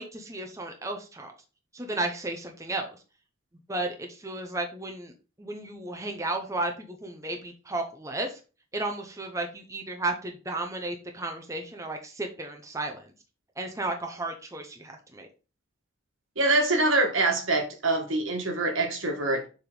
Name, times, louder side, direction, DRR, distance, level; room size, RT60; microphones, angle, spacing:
voice 1, 0.0-1.3 1.7-3.0 3.7-5.1 5.4-8.4 8.7-13.1 13.6-15.3, right 2 dB, 15° right, 0.7 m, -33 dB
voice 2, 16.4-19.5, right 2 dB, 80° right, 1.7 m, -25 dB
7.2 x 3.6 x 3.9 m
head